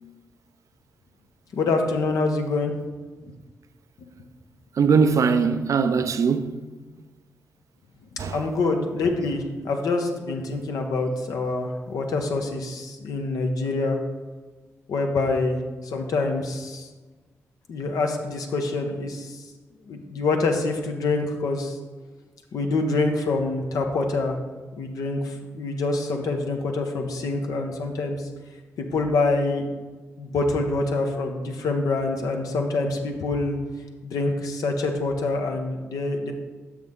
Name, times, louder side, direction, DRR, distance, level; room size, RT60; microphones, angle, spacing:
voice 1, 1.5-2.7 3.2-3.3 4.0-4.1 8.3-14.0 14.9-16.9 17.7-19.4 19.9-21.8 22.5-24.4 24.8-28.2 28.8-29.7 30.2-33.6 34.0-36.3, left 3 dB, 75° left, 0.9 m, -26 dB
voice 2, 4.8-6.5 8.2-8.4, right 5 dB, 60° right, 0.5 m, -21 dB
6.4 x 6.2 x 3.6 m
supercardioid pair, 45°, 6 cm